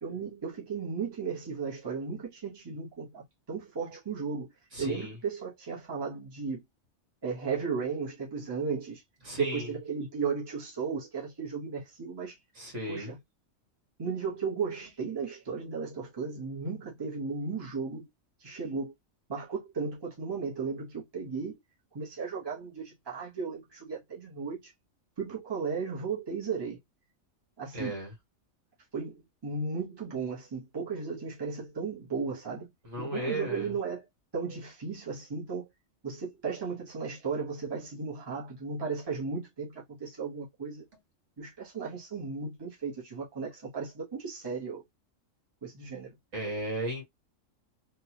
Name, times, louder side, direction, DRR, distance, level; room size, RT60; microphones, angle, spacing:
voice 1, 0.0-4.5 4.8-6.6 7.2-9.0 9.3-12.3 12.9-13.2 14.0-18.1 18.4-18.9 19.3-21.6 21.9-24.7 25.2-26.8 27.6-27.9 28.9-32.7 33.0-34.0 34.3-35.7 36.0-40.8 41.4-44.8 45.6-46.1, right 5 dB, 20° right, 1.1 m, -35 dB
voice 2, 4.7-5.2 9.3-9.7 12.6-13.1 27.7-28.1 32.8-33.7 46.3-47.0, right 1 dB, 60° right, 1.9 m, -35 dB
3.4 x 2.5 x 2.9 m
omnidirectional pair, 1.4 m